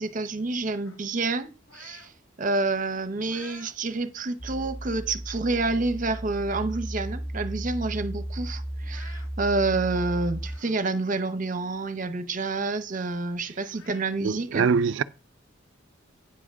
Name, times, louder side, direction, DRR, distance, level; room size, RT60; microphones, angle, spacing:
voice 1, 0.0-2.1 2.4-14.7, right 3 dB, 40° right, 0.7 m, -28 dB
sound 1, 0.8-2.1 2.6-3.8 4.3-4.4 5.3-5.4 5.8-5.9 6.2-6.8 7.2-7.3 7.6-7.7 8.7-9.3 10.3-10.8 11.2-11.3 12.9-13.0 13.7-14.1, left 4 dB, 80° left, 1.4 m, -51 dB
sound 2, 4.4-10.6, right 1 dB, ahead, 0.4 m, -35 dB
voice 2, 14.2-15.0, right 5 dB, 65° right, 0.4 m, -23 dB
9.3 x 4.9 x 6.1 m
head